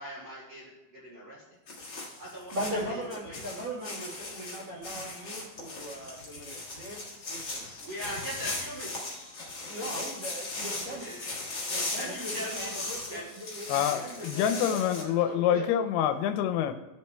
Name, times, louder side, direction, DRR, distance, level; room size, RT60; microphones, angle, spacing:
voice 1, 0.0-1.4 2.2-2.5 2.9-3.4 7.8-8.9 10.9-11.3 11.9-12.8 13.1-13.3 13.7-13.9 14.4-14.5 15.2-15.6, equal, 35° right, -9 dB, 2.4 m, -41 dB
sound 1, 1.7-15.0, left 2 dB, 60° left, 1.1 m, -38 dB
voice 2, 2.5-7.0 7.3-7.7 9.6-11.1 11.7-15.7, equal, 80° right, -5 dB, 1.0 m, -39 dB
voice 3, 13.7-16.7, left 10 dB, 90° left, 8 dB, 2.6 m, -26 dB
14.5 x 7.3 x 2.2 m, 1.0 s
omnidirectional pair, 4.5 m